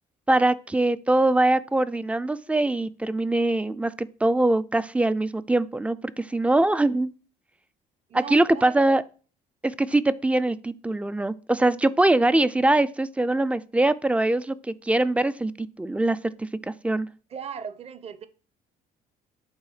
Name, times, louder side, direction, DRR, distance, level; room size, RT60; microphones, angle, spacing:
voice 1, 0.3-7.1 8.1-9.0 9.6-16.5 16.8-17.1, right 2 dB, 5° right, 0.3 m, -23 dB
voice 2, 8.1-9.0 17.3-18.3, right 7 dB, 40° right, 0.7 m, -38 dB
8.2 x 3.8 x 4.9 m
cardioid pair, 110°, 17 cm